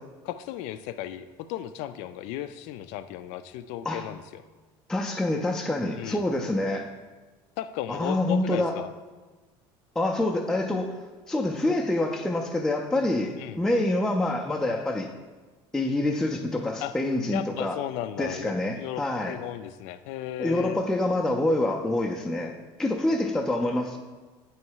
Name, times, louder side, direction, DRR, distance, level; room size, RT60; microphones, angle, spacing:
voice 1, 0.3-4.4 6.0-6.2 7.6-8.9 13.4-13.6 16.8-16.9 17.3-20.8, left 12 dB, 75° left, 12 dB, 0.4 m, -35 dB
voice 2, 4.9-6.9 7.9-8.8 10.0-15.1 15.7-17.8 18.2-19.4 20.4-24.0, left 1 dB, 5° left, 0 dB, 0.4 m, -26 dB
9.3 x 3.1 x 4.6 m, 1.3 s
cardioid pair, 140°, 12 cm